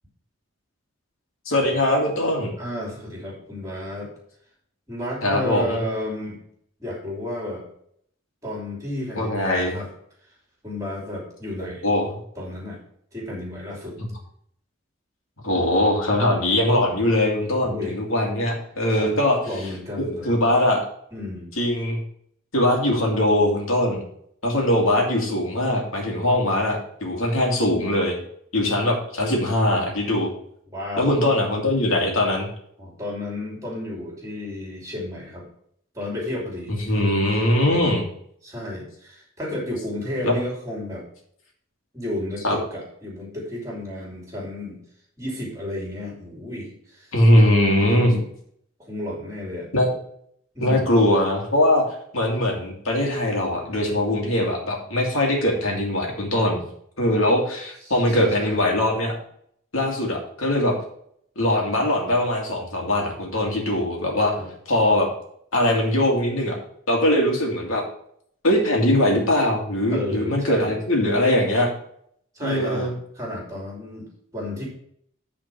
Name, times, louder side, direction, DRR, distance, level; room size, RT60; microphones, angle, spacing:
voice 1, 1.5-2.5 5.2-5.8 9.2-9.8 11.6-12.1 14.0-14.1 15.4-19.4 20.0-20.8 21.6-22.0 22.5-24.0 24.4-28.2 28.5-30.3 31.0-32.5 36.7-38.1 40.2-40.3 42.4-42.6 47.1-48.1 49.7-49.9 50.6-51.8 52.1-56.6 57.0-59.2 59.7-60.7 61.4-64.3 64.7-65.1 65.5-66.6 66.9-67.8 68.4-71.7 72.4-72.9, left 1 dB, 85° left, 0 dB, 2.3 m, -21 dB
voice 2, 2.6-4.1 4.9-6.4 6.8-7.6 8.4-9.9 10.6-11.9 12.4-12.8 13.1-14.0 17.6-17.9 18.9-19.1 19.4-20.4 21.1-21.5 30.7-31.1 32.8-35.5 35.9-37.0 37.4-37.9 38.4-41.0 41.9-44.8 45.2-47.1 47.9-48.3 48.8-49.7 50.5-50.9 57.8-58.6 64.4-64.5 69.9-70.8 72.3-74.7, left 1 dB, 15° right, -3 dB, 2.8 m, -32 dB
9.1 x 4.4 x 5.9 m, 0.66 s
head